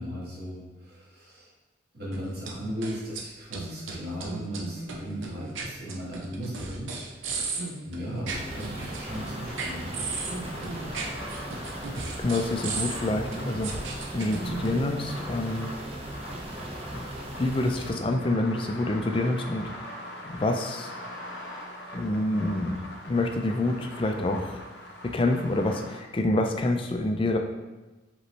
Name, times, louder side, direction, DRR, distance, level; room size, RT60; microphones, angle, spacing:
voice 1, 0.0-1.5 1.9-7.4 7.8-10.0, equal, 55° right, -6 dB, 1.5 m, -37 dB
sound 1, 2.1-3.2 3.5-14.8, right 3 dB, 85° right, 0.6 m, -36 dB
sound 2, 8.3-17.9, right 1 dB, 30° right, 0.6 m, -38 dB
sound 3, 8.4-26.0, left 1 dB, 60° left, 0.7 m, -43 dB
voice 2, 11.9-15.7 16.9-19.7 20.3-20.9 21.9-24.6 25.0-27.4, left 2 dB, 25° left, 4 dB, 0.4 m, -27 dB
5.2 x 3.1 x 3.1 m, 1.2 s
head